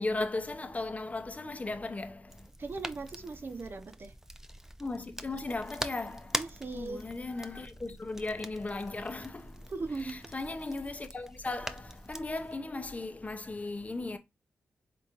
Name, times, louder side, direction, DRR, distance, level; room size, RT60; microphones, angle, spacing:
voice 1, 0.0-2.4 4.8-6.4 6.7-9.6 10.0-14.2, left 2 dB, 30° left, 0.8 m, -36 dB
sound 1, 2.3-12.5, right 1 dB, 10° right, 0.6 m, -43 dB
voice 2, 2.6-4.2 6.3-7.0 9.7-10.2, right 3 dB, 50° right, 0.8 m, -39 dB
3.8 x 3.6 x 2.9 m
supercardioid pair, 40°, 5 cm